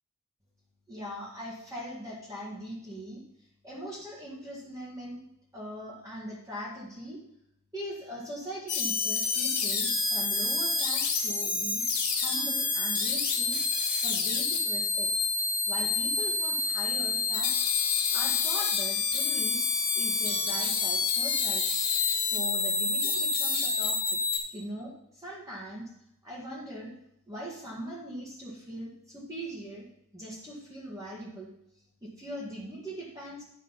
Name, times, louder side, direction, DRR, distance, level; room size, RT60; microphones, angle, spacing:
voice 1, 0.9-5.2 5.5-7.2 7.7-11.8 12.1-13.6 14.0-15.1 15.7-17.6 18.1-19.7 19.9-21.6 22.1-24.2 24.5-25.9 26.2-26.9 27.3-29.9 30.1-31.5 32.0-33.4, equal, 15° right, -5 dB, 1.7 m, -41 dB
sound 1, 8.7-24.4, left 4 dB, 45° left, 2.2 m, -28 dB
10.0 x 4.8 x 5.7 m, 0.77 s
head